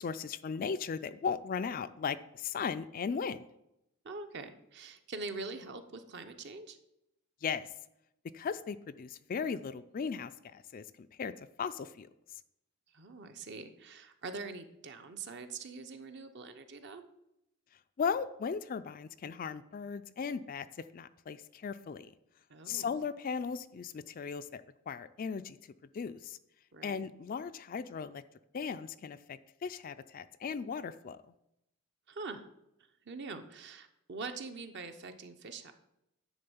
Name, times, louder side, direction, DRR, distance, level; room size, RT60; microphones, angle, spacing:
voice 1, 0.0-3.5 7.4-7.6 8.3-10.8 11.2-11.3 11.6-12.1 18.0-20.7 20.9-22.1 22.7-25.6 25.9-26.4 26.8-28.2 28.5-31.2, left 6 dB, 40° left, 12 dB, 0.3 m, -37 dB
voice 2, 4.0-6.8 12.9-17.0 22.5-23.0 26.7-27.0 32.1-32.4 33.1-35.7, right 3 dB, 50° right, 7 dB, 0.8 m, -44 dB
10.5 x 3.7 x 7.0 m, 0.84 s
head